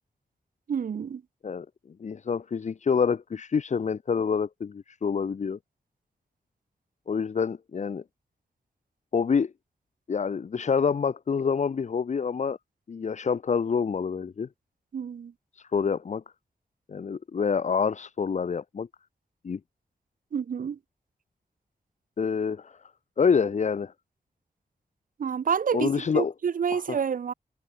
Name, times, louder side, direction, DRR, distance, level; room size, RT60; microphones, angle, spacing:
voice 1, 0.7-1.2 14.9-15.3 20.3-20.8 25.2-27.3, right 7 dB, 60° right, 0.5 m, -28 dB
voice 2, 2.0-5.6 7.1-8.0 9.1-9.5 10.1-12.6 12.9-14.5 15.5-16.2 16.9-18.9 19.4-19.6 22.2-22.8 23.2-23.9 25.7-26.3 26.7-27.0, left 6 dB, 50° left, 0.5 m, -27 dB
wide cardioid pair, 115°, 16 cm